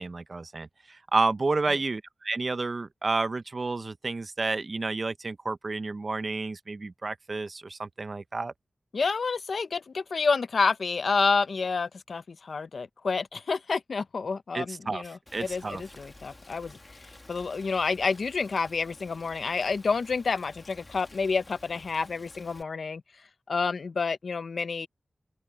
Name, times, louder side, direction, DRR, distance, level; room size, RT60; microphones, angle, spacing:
voice 1, 0.0-8.5 14.5-15.0 15.3-15.8, right 3 dB, 50° right, 0.6 m, -30 dB
voice 2, 8.9-24.9, left 4 dB, 80° left, 0.7 m, -29 dB
Rain, 15.3-22.6, left 2 dB, 30° left, 2.4 m, -52 dB
wide cardioid pair, 70°, 0 cm